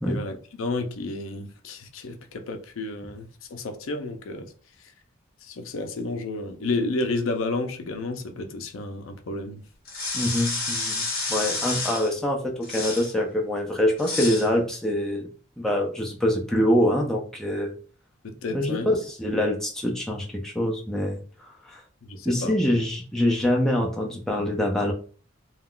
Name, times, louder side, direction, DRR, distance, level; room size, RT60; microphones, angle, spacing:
voice 1, 0.1-3.3 3.5-4.5 5.4-9.6 18.2-18.9 22.0-22.5, left 2 dB, 65° left, 0.4 m, -31 dB
sound 1, 9.8-12.1 12.6-13.1 14.0-14.5, left 3 dB, 45° left, 0.8 m, -30 dB
voice 2, 10.1-15.3 15.6-17.7 18.5-21.2 21.6-21.8 22.3-24.9, left 1 dB, ahead, 0.4 m, -25 dB
2.3 x 2.2 x 3.6 m
head